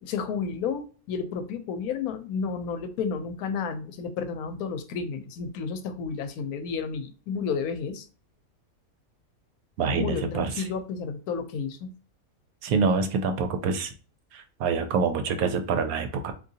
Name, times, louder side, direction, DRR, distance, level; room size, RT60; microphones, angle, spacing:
voice 1, 0.0-8.1 10.0-11.9, left 5 dB, 85° left, 9 dB, 1.1 m, -31 dB
voice 2, 9.8-10.5 12.6-13.9 14.3-16.3, right 5 dB, 85° right, 7 dB, 1.1 m, -26 dB
3.7 x 2.7 x 2.7 m, 0.38 s
omnidirectional pair, 1.5 m